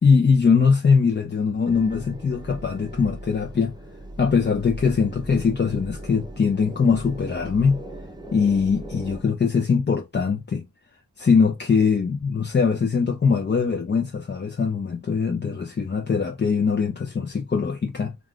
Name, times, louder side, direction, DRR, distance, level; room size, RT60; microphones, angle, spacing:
voice 1, 0.0-3.7 4.2-7.8 8.3-10.6 11.2-18.1, left 5 dB, 30° left, 0.4 m, -21 dB
sound 1, 1.7-9.2, right 1 dB, 10° right, 0.6 m, -39 dB
2.4 x 2.3 x 3.6 m
cardioid pair, 45°, 37 cm